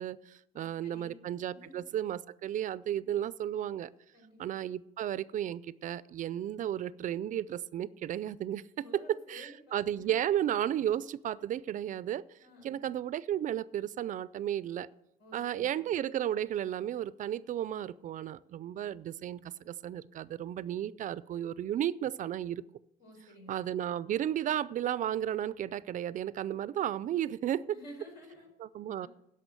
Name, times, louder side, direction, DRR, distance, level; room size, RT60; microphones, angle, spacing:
voice 1, 0.0-3.9 4.4-12.2 12.6-14.9 15.3-22.6 23.5-27.7 28.6-29.1, right 11 dB, 50° right, 0.4 m, -34 dB
voice 2, 0.5-1.2 1.4-1.8 2.9-3.2 4.1-4.5 8.8-10.1 12.4-12.8 15.2-15.8 23.0-23.9 27.7-28.5 29.0-29.1, left 1 dB, 80° left, 4.3 m, -53 dB
10.5 x 5.8 x 8.1 m
cardioid pair, 110°, 17 cm